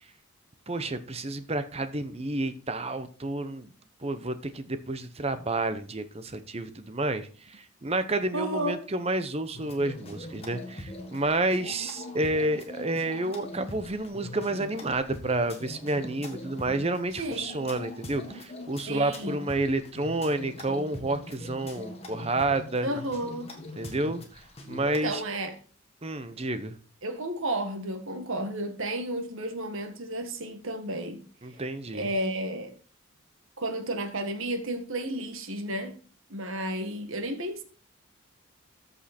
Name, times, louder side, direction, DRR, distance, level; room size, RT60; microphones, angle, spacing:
voice 1, 0.7-3.7 4.0-22.9 23.8-24.2 24.7-25.2 26.0-26.7 31.4-32.1, right 2 dB, 30° right, 0.8 m, -30 dB
voice 2, 8.3-8.8 17.2-17.6 18.9-19.4 22.8-23.5 24.9-25.6 27.0-31.2 31.9-32.8 33.6-35.9 36.3-37.6, right 1 dB, 65° right, 1.8 m, -32 dB
sound 1, 9.5-25.1, left 1 dB, 30° left, 1.7 m, -42 dB
14.0 x 5.5 x 4.3 m
head